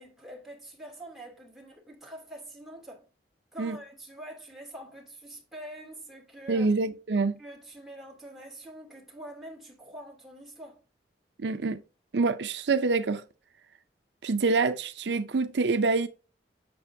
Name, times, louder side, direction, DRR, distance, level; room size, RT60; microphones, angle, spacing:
voice 1, 0.0-3.1 3.5-6.7 7.4-10.8, right 1 dB, ahead, 2.8 m, -45 dB
voice 2, 6.5-7.4 11.4-11.8 12.1-13.2 14.2-16.1, right 3 dB, 70° right, 0.5 m, -26 dB
7.8 x 6.8 x 2.7 m
head